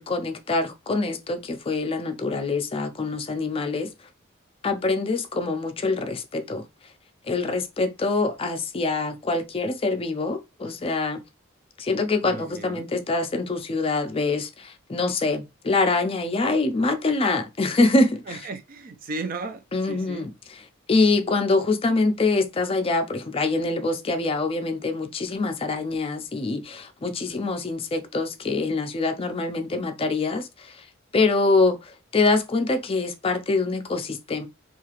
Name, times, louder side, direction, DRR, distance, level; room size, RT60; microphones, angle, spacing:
voice 1, 0.0-3.9 4.6-6.6 7.2-11.2 11.8-18.4 19.7-20.3 20.9-30.8 31.1-34.5, left 3 dB, 30° left, 0.4 m, -25 dB
voice 2, 12.2-12.9 18.3-20.3, right 3 dB, 45° right, 0.5 m, -35 dB
2.8 x 2.4 x 2.9 m
head